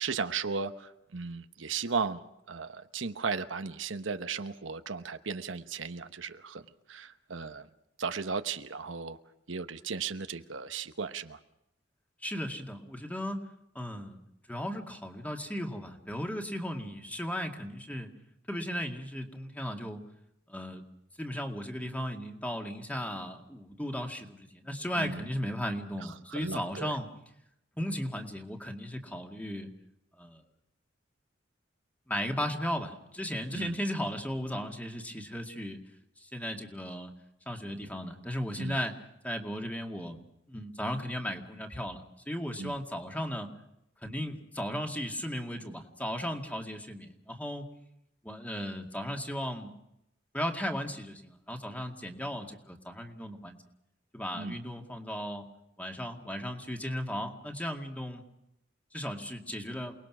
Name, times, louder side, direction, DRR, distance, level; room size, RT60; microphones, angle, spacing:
voice 1, 0.0-2.2 2.5-6.6 6.9-7.7 8.0-9.2 9.5-11.4 25.0-25.2 26.0-26.9 33.5-33.8 38.6-38.8 42.6-42.8 54.4-54.6, right 5 dB, 85° right, 9 dB, 1.0 m, -36 dB
voice 2, 12.2-13.4 13.7-14.2 14.5-18.1 18.5-20.0 20.5-20.8 21.2-27.1 27.8-29.7 30.2-30.4 32.1-35.8 36.2-37.1 37.5-38.9 39.2-40.2 40.5-43.5 44.0-47.6 48.2-49.7 50.3-53.6 54.1-55.4 55.8-58.2 58.9-60.0, equal, 10° left, 3 dB, 2.1 m, -36 dB
28.5 x 20.0 x 6.1 m, 0.82 s
head